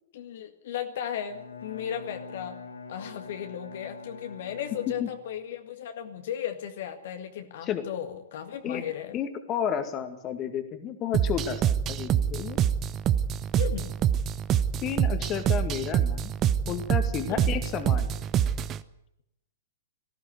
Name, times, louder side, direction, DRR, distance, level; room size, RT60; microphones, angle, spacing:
voice 1, 0.1-2.6 2.9-9.2 13.6-14.0 17.3-17.5, left 10 dB, 55° left, 6 dB, 1.8 m, -36 dB
Bowed string instrument, 1.2-5.5, left 4 dB, 80° left, 3.8 m, -44 dB
voice 2, 9.1-12.6 14.8-16.3 16.7-18.1, left 8 dB, 25° left, 8 dB, 2.2 m, -32 dB
sound 1, 11.1-18.8, right 9 dB, 25° right, 0.8 m, -26 dB
19.0 x 15.0 x 9.6 m, 0.80 s
figure-of-eight pair, 110°, 0 cm